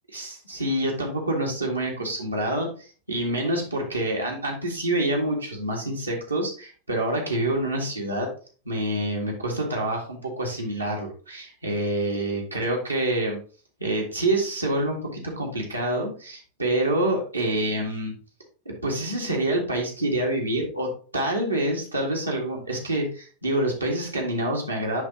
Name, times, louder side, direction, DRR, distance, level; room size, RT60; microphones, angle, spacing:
voice 1, 0.1-8.3 8.7-13.4 13.8-18.1 18.7-25.0, right 1 dB, 80° right, -1 dB, 2.0 m, -27 dB
10.5 x 3.5 x 3.0 m, 0.38 s
figure-of-eight pair, 90°, 0 cm